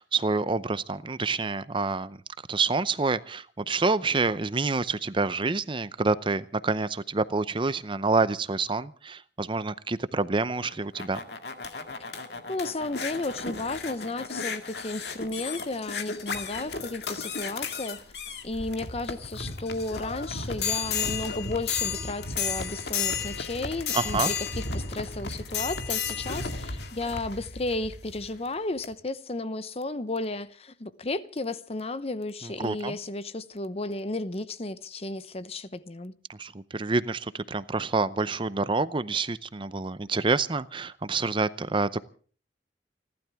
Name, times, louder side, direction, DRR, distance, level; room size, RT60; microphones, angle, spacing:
voice 1, 0.0-2.2 2.5-11.2 23.9-24.3 32.4-32.9 36.4-42.0, right 3 dB, 30° right, 0.6 m, -27 dB
sound 1, 10.6-28.3 28.8-28.9, left 5 dB, 70° left, 2.1 m, -33 dB
voice 2, 12.0-18.0 18.4-36.1, left 2 dB, 35° left, 0.9 m, -33 dB
30.0 x 12.5 x 3.5 m
head